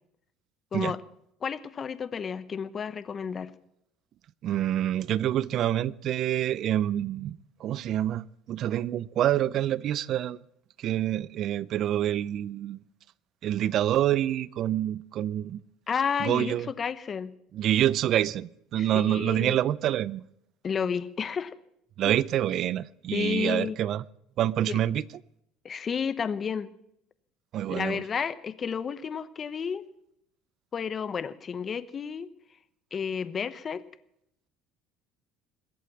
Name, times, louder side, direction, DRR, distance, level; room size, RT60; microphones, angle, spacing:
voice 1, 1.4-3.5 15.9-17.3 18.8-19.6 20.6-21.5 22.0-22.2 23.1-23.8 24.7-24.8 25.6-26.7 27.7-29.8 30.7-32.3 32.9-33.8, left 6 dB, 30° left, 1.0 m, -31 dB
voice 2, 4.4-10.4 10.8-12.8 13.4-15.6 16.2-16.7 17.5-20.2 22.0-24.0 24.4-25.0 27.5-28.0, right 12 dB, 50° right, 0.5 m, -27 dB
22.0 x 8.5 x 7.4 m
cardioid pair, 120°, 0 cm